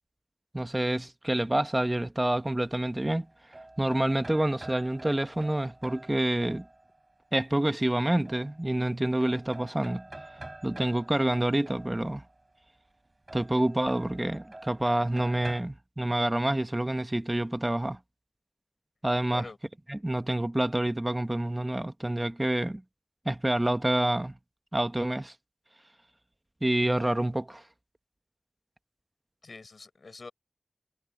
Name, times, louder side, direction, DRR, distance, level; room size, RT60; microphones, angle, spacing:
voice 1, 0.5-3.3 3.8-6.6 7.3-10.0 10.6-12.2 13.3-18.0 19.0-19.4 19.9-22.8 23.2-24.3 24.7-25.3 26.6-27.6, right 1 dB, 20° right, 1.1 m, -27 dB
sound 1, 3.1-7.1 8.2-8.9 9.2-12.4 13.3-15.6, right 2 dB, 40° right, 3.8 m, -47 dB
voice 2, 29.4-30.3, left 3 dB, 85° left, 7.3 m, -45 dB
wide cardioid pair, 75°, 0 cm